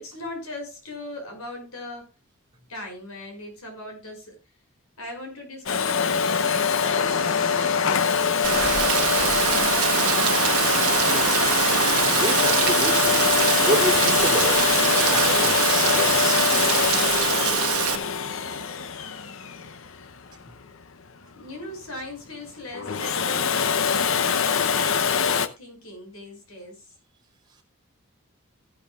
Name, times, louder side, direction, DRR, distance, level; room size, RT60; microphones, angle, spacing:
voice 1, 0.0-2.1 2.7-4.4 5.0-7.5 7.8-9.7 10.9-11.4 21.3-26.9, left 1 dB, 85° left, 5.8 m, -39 dB
Domestic sounds home sounds, 5.7-20.4 22.7-25.5, left 6 dB, 65° left, 0.8 m, -23 dB
Rain, 8.4-17.9, right 9 dB, 90° right, 1.1 m, -23 dB
voice 2, 12.1-13.2 13.6-16.5, right 1 dB, 20° right, 3.0 m, -29 dB
15.0 x 11.0 x 2.4 m
head